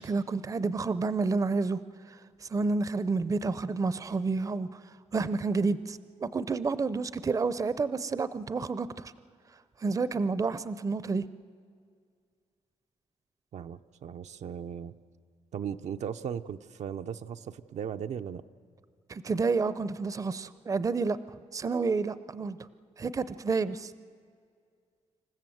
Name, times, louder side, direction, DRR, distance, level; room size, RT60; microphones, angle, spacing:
voice 1, 0.0-1.8 2.1-4.8 5.1-9.1 9.8-11.3 19.1-21.2 21.5-22.6 23.0-23.9, right 4 dB, 30° right, 15 dB, 0.6 m, -29 dB
voice 2, 13.5-14.9 15.5-18.4, right 8 dB, 70° right, 8 dB, 0.6 m, -37 dB
27.0 x 15.0 x 7.8 m, 2.2 s
wide cardioid pair, 135°, 12 cm